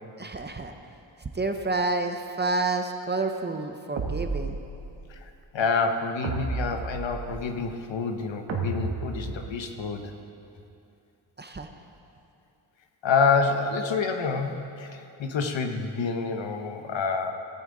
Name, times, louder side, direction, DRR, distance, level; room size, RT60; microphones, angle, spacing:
voice 1, 0.2-0.7 1.2-4.6 11.4-11.7, right 3 dB, 25° right, 5 dB, 0.6 m, -29 dB
sound 1, 4.0-5.0 6.2-7.5 8.5-9.7, right 3 dB, 85° right, 1.3 m, -32 dB
voice 2, 5.1-10.1 13.0-17.3, left 4 dB, 75° left, 6 dB, 1.0 m, -27 dB
16.5 x 8.9 x 3.8 m, 2.7 s
wide cardioid pair, 125°, 45 cm